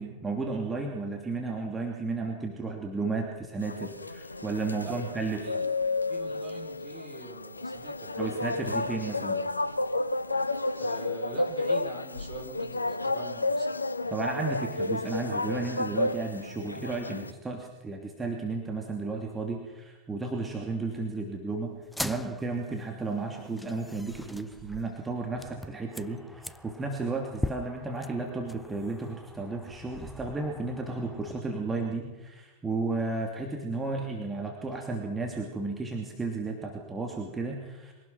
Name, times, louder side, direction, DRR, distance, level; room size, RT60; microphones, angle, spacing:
voice 1, 0.0-5.4 8.2-9.4 14.1-21.7 22.0-37.9, right 3 dB, 15° right, 1 dB, 2.9 m, -33 dB
sound 1, 3.6-17.3, left 2 dB, 80° left, 0.8 m, -31 dB
voice 2, 6.1-8.7 10.8-14.6, right 5 dB, 35° right, 3 dB, 4.6 m, -45 dB
sound 2, 21.8-31.4, left 1 dB, 5° left, 0.7 m, -41 dB
24.0 x 18.0 x 6.1 m, 1.2 s
figure-of-eight pair, 90°, 0 cm